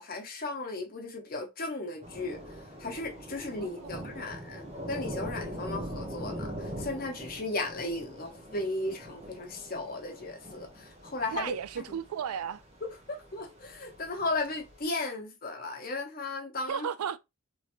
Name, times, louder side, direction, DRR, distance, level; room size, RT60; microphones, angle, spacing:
voice 1, 0.0-12.0 13.1-16.9, left 2 dB, 40° left, 0.8 m, -36 dB
Thunder / Rain, 2.0-14.8, equal, 30° right, 0.8 m, -42 dB
voice 2, 3.6-4.1 11.3-12.6 16.7-17.2, right 8 dB, 85° right, 0.3 m, -35 dB
3.1 x 2.9 x 2.5 m
head